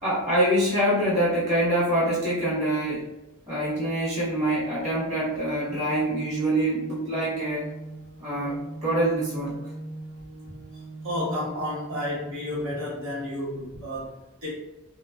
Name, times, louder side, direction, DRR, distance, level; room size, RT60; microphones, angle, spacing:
voice 1, 0.0-3.1 3.5-7.7 8.2-9.6, right 1 dB, 35° right, -8 dB, 1.2 m, -25 dB
sound 1, 5.5-11.5, right 2 dB, 85° right, 0.4 m, -40 dB
voice 2, 11.0-14.1 14.4-14.5, left 1 dB, 65° right, -8 dB, 1.1 m, -31 dB
3.1 x 2.4 x 2.3 m, 0.94 s
head